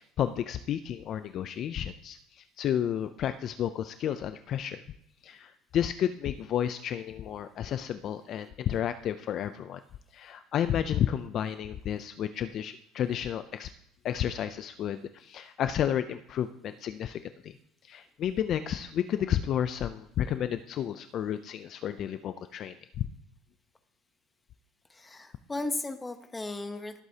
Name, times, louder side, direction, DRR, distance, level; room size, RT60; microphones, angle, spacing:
voice 1, 0.0-4.8 5.2-9.8 10.1-13.7 14.0-17.6 17.8-22.8, left 10 dB, 40° left, 11 dB, 0.4 m, -31 dB
voice 2, 24.9-27.0, left 2 dB, 10° left, 8 dB, 0.9 m, -36 dB
19.0 x 8.1 x 2.8 m, 0.74 s
cardioid pair, 155°, 0 cm